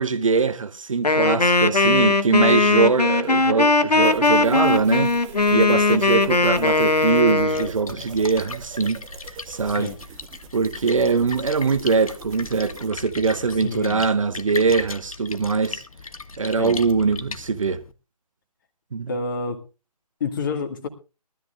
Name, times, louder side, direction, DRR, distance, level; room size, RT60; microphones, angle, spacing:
voice 1, 0.0-5.1 5.5-9.0 9.5-9.9 10.5-15.8 16.4-17.8 18.9-19.1, right 4 dB, 55° right, 1.0 m, -22 dB
Wind instrument woodwind instrument, 1.0-7.7, left 3 dB, 75° left, 1.3 m, -19 dB
sound 1, 4.0-12.9, right 6 dB, 10° right, 0.8 m, -43 dB
Splash splatter, 7.3-17.9, left 4 dB, 60° left, 1.1 m, -37 dB
voice 2, 13.6-14.1 16.6-16.8 19.1-19.6 20.2-20.9, left 4 dB, 30° left, 1.9 m, -28 dB
22.0 x 13.0 x 2.5 m
figure-of-eight pair, 145°, 21 cm